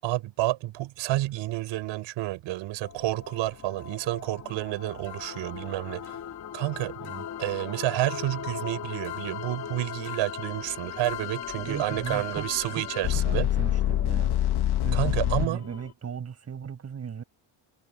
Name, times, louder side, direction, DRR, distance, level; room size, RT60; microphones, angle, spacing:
voice 1, 0.0-6.1 6.5-7.0 7.4-13.5 14.9-15.6, right 16 dB, 85° right, 6.3 m, -30 dB
sound 1, 2.8-15.9, left 8 dB, 40° left, 4.0 m, -41 dB
sound 2, 5.1-15.5, left 12 dB, 60° left, 1.5 m, -30 dB
voice 2, 11.7-14.4 14.8-17.2, right 7 dB, 35° right, 7.8 m, -37 dB
cardioid pair, 155°, 45 cm